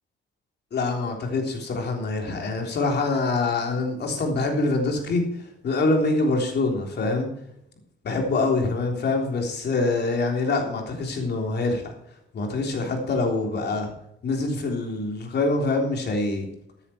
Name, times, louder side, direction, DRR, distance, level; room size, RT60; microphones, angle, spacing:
voice 1, 0.7-5.2 5.6-7.3 8.0-11.9 12.3-13.9 14.2-16.5, left 3 dB, 55° left, 2 dB, 3.5 m, -25 dB
14.0 x 9.9 x 4.5 m, 0.75 s
cardioid pair, 90°, 20 cm